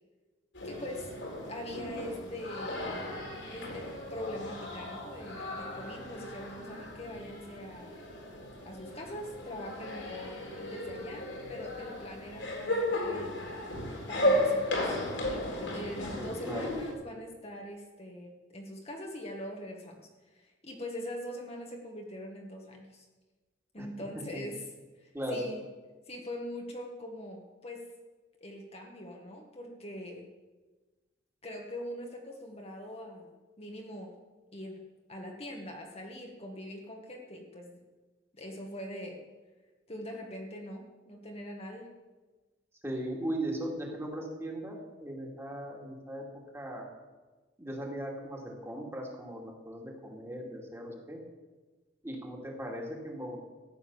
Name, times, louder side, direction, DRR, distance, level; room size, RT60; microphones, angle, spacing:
sound 1, 0.5-16.9, left 1 dB, 70° left, 3.9 m, -35 dB
voice 1, 0.6-1.1 1.4-2.8 3.5-8.0 8.6-13.3 14.1-23.1 23.7-24.7 25.0-25.6 26.1-27.9 28.4-30.3 31.4-34.1 34.5-37.8 38.3-39.2 39.9-41.9, left 1 dB, 30° left, 1 dB, 1.5 m, -43 dB
voice 2, 16.2-16.7 23.8-23.9 24.3-24.4 25.1-25.5 42.8-46.3 46.5-46.9 47.6-51.2 52.0-53.4, right 1 dB, 15° right, 0 dB, 2.4 m, -38 dB
14.5 x 9.7 x 7.0 m, 1.3 s
head